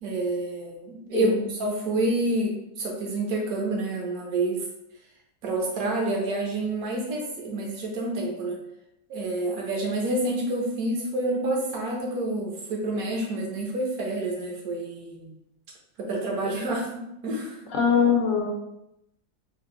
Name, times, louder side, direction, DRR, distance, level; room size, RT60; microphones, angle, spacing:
voice 1, 0.0-1.3 1.6-4.6 5.4-8.6 9.1-15.3 16.0-16.9 17.2-17.7, right 2 dB, 70° right, -1 dB, 1.3 m, -28 dB
voice 2, 1.1-1.5 17.7-18.5, left 6 dB, 65° left, 0 dB, 1.1 m, -22 dB
4.4 x 2.2 x 3.7 m, 0.86 s
omnidirectional pair, 1.6 m